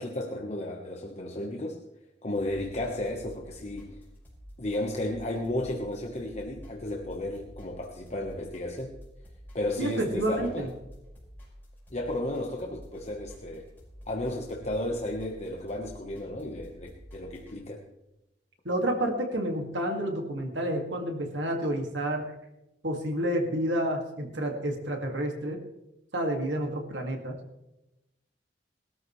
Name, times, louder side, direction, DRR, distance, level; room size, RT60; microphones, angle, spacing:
voice 1, 0.0-1.8 2.2-4.0 4.6-8.9 9.5-10.7 11.9-13.7 14.1-17.8, left 1 dB, 35° left, 1 dB, 1.2 m, -33 dB
sound 1, 2.3-17.6, equal, 10° left, 5.4 m, -50 dB
voice 2, 9.8-10.7 18.6-22.3 22.8-25.6 26.1-27.4, right 1 dB, 75° right, 3 dB, 2.2 m, -29 dB
20.5 x 13.0 x 3.2 m, 0.92 s
head